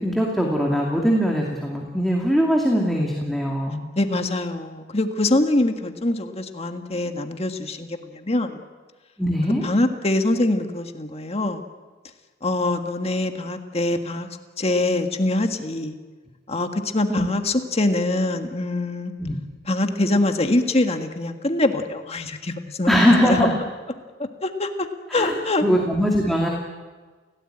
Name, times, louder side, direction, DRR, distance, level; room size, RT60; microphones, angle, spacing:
voice 1, 0.0-3.8 9.2-9.6 17.1-17.3 19.2-19.4 22.9-23.5 25.1-25.3 25.6-26.5, equal, ahead, -1 dB, 2.5 m, -21 dB
voice 2, 3.9-8.6 9.6-11.6 12.4-14.3 14.6-15.9 16.5-19.1 19.6-23.5 24.2-25.6, left 2 dB, 35° left, 6 dB, 1.7 m, -24 dB
28.5 x 17.5 x 9.0 m, 1.4 s
head